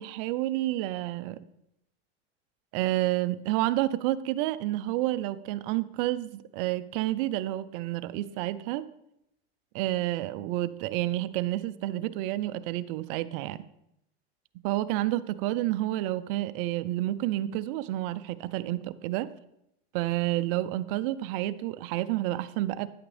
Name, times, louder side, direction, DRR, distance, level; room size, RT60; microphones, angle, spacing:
voice 1, 0.0-1.4 2.7-8.8 9.7-13.7 14.6-19.3 19.9-22.9, right 15 dB, 60° right, 15 dB, 0.6 m, -29 dB
9.5 x 8.7 x 3.3 m, 0.79 s
supercardioid pair, 120°, 31 cm